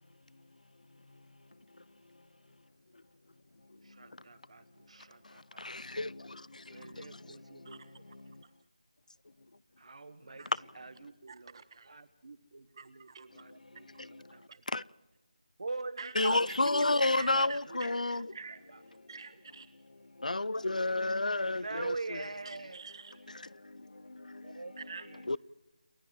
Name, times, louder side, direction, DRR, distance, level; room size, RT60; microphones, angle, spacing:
voice 1, 0.9-2.3 3.6-4.3 4.8-8.4 10.4-11.1 13.3-14.8 16.1-18.3 19.0-19.1 19.9-22.3 23.3-25.4, left 2 dB, 80° left, 0.7 m, -34 dB
voice 2, 4.0-5.6 6.7-7.8 9.8-10.4 10.8-11.5 11.9-14.4 15.6-16.4 16.7-17.5 21.6-22.8 24.4-24.7 25.1-25.2, right 3 dB, 55° right, 1.5 m, -43 dB
voice 3, 11.3-11.9 12.7-13.3 13.9-14.0 16.0-16.6 17.1-17.6 18.3-18.6 19.1-19.7 22.4-23.5 24.8-25.1, right 5 dB, 40° right, 1.5 m, -47 dB
29.0 x 12.5 x 7.4 m
figure-of-eight pair, 165°, 4 cm